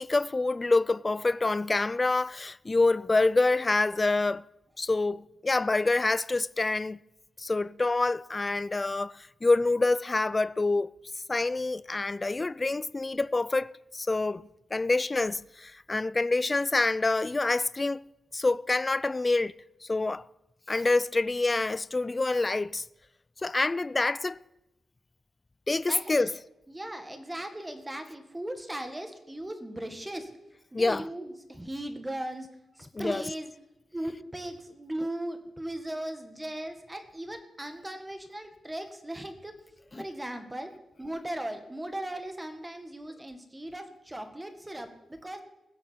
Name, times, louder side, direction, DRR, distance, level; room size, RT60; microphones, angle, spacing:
voice 1, 0.0-4.5 4.8-7.0 7.4-10.9 11.3-14.4 14.7-18.0 18.3-19.5 19.8-20.2 20.7-22.8 23.4-24.4 25.7-26.3 30.7-31.1 32.9-33.3 39.9-40.0, left 3 dB, 25° left, 0.4 m, -26 dB
voice 2, 25.9-26.3 26.7-30.3 30.7-32.5 32.8-33.5 33.9-39.5 40.0-40.7 41.0-45.4, right 1 dB, 10° right, 1.7 m, -38 dB
20.0 x 8.0 x 4.4 m
wide cardioid pair, 115°, 0 cm